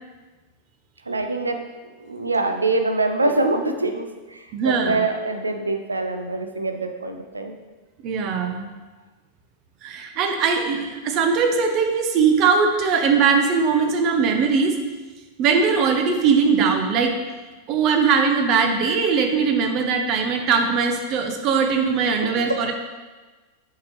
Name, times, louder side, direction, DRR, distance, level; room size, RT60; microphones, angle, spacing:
voice 1, 1.1-7.6 22.2-22.6, right 2 dB, 80° right, 5 dB, 0.5 m, -25 dB
voice 2, 4.5-5.0 8.0-8.7 9.8-14.8 15.4-17.2 17.7-22.7, right 5 dB, 40° right, 4 dB, 0.8 m, -20 dB
7.0 x 4.7 x 3.2 m, 1.3 s
figure-of-eight pair, 90°, 0 cm